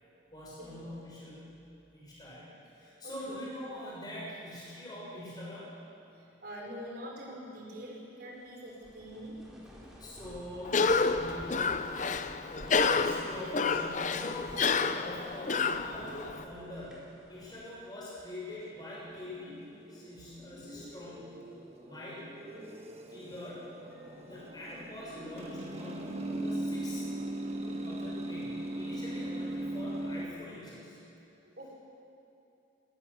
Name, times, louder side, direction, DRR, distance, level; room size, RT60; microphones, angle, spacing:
voice 1, 0.3-1.5 1.9-5.7 10.0-14.7 14.9-19.6 19.9-21.3 21.8-22.4 23.1-23.7 24.2-27.1 27.6-31.0, left 1 dB, 20° left, -6 dB, 6.5 m, -44 dB
voice 2, 3.0-3.4 6.2-9.4 22.5-22.7 24.0-24.3 27.2-27.7 31.4-31.7, equal, 55° right, -2 dB, 5.3 m, -46 dB
sound 1, 8.4-17.9 18.1-18.3 18.9-19.4 19.9-21.0, equal, 5° right, 4.1 m, -52 dB
Cough, 10.6-16.4, left 4 dB, 40° left, 0.6 m, -29 dB
sound 2, 18.6-30.3, right 1 dB, 35° right, 1.6 m, -39 dB
20.5 x 18.0 x 7.1 m, 2.7 s
head